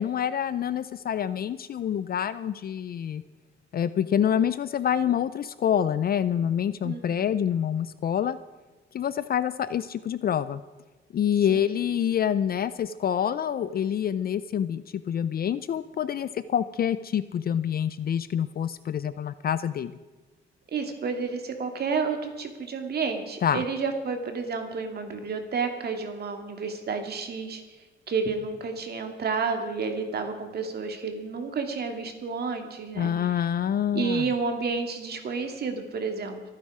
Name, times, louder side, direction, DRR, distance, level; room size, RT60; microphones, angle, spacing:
voice 1, 0.0-3.2 3.7-8.4 8.9-10.6 11.1-20.0 23.4-23.6 33.0-34.3, left 9 dB, 50° left, 15 dB, 0.5 m, -27 dB
voice 2, 6.8-7.2 11.5-11.7 20.7-27.6 28.1-33.1 33.9-36.4, right 4 dB, 55° right, 5 dB, 2.4 m, -30 dB
26.5 x 9.8 x 4.9 m, 1.2 s
cardioid pair, 90°, 20 cm